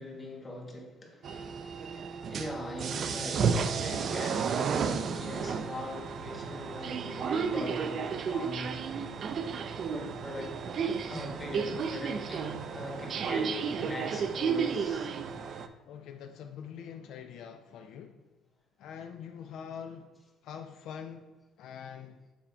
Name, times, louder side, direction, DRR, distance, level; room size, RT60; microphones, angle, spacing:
voice 1, 0.0-1.9 2.2-8.8 9.9-10.6 11.1-15.1, left 1 dB, 20° left, 1 dB, 1.2 m, -41 dB
sound 1, 1.2-15.7, right 6 dB, 45° right, 0.4 m, -32 dB
voice 2, 15.9-18.2 18.8-20.2 20.4-21.3 21.6-22.2, left 7 dB, 70° left, 6 dB, 0.4 m, -44 dB
7.1 x 3.4 x 4.3 m, 1.2 s
cardioid pair, 120°, 0 cm